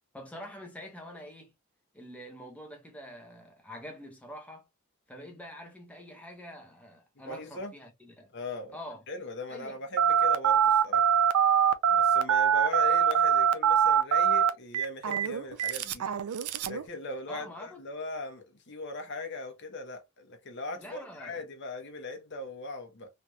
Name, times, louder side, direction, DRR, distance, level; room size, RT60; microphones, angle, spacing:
voice 1, 0.1-1.5 1.9-4.6 5.1-8.3 8.7-9.0 9.5-9.8 17.3-17.8 20.8-21.4, equal, 5° left, 0.9 m, -45 dB
voice 2, 7.2-7.7 8.3-8.8 9.1-11.1 11.9-16.1 16.6-23.1, left 2 dB, 55° left, 0.9 m, -39 dB
Telephone, 10.0-16.8, right 8 dB, 80° right, 0.4 m, -23 dB
3.3 x 2.8 x 2.3 m
head